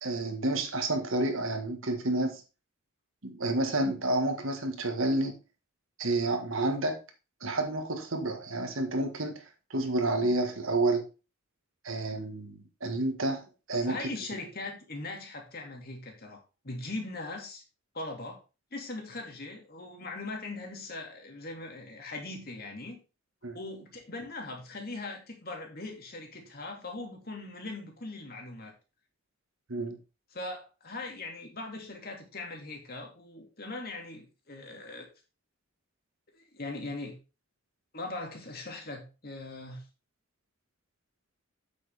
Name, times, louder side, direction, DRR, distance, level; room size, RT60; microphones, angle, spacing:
voice 1, 0.0-2.4 3.2-5.4 6.0-7.0 7.4-9.4 9.7-11.0 11.8-13.4 13.7-14.1 23.4-23.6 29.7-30.0, right 2 dB, 70° right, 5 dB, 1.8 m, -29 dB
voice 2, 13.9-17.6 17.9-18.4 18.7-23.0 23.5-28.7 30.3-35.1 36.3-37.2 37.9-39.8, left 2 dB, 45° left, 2 dB, 2.5 m, -40 dB
8.5 x 7.5 x 3.5 m, 0.31 s
head